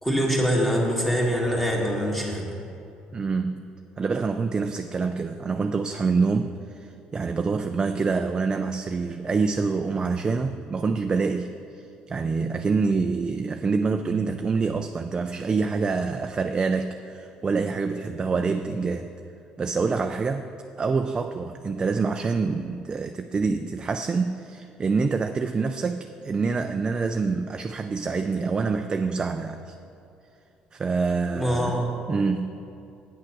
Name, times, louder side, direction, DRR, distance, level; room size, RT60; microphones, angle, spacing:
voice 1, 0.0-2.5 31.3-31.9, equal, 5° left, -2 dB, 2.1 m, -24 dB
voice 2, 3.1-3.6 4.0-11.5 11.8-19.1 19.6-20.5 20.7-29.8 30.7-31.8 32.1-32.6, right 4 dB, 30° right, 6 dB, 0.4 m, -26 dB
8.7 x 6.5 x 5.8 m, 2.6 s
supercardioid pair, 90°, 3 cm